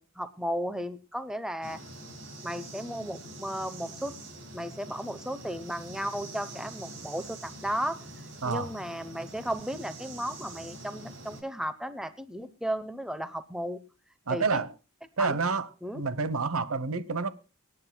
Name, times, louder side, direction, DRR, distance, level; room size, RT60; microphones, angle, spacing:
voice 1, 0.0-1.8 2.4-4.1 4.5-8.0 8.5-13.8 14.3-14.6 15.2-15.4 15.8-16.0, equal, 5° right, 0.8 m, -34 dB
sound 1, 1.6-11.4, right 1 dB, 60° right, 7.2 m, -45 dB
voice 2, 14.3-14.7 15.2-15.7 15.9-17.3, right 4 dB, 80° right, 1.0 m, -28 dB
25.0 x 10.0 x 2.2 m
head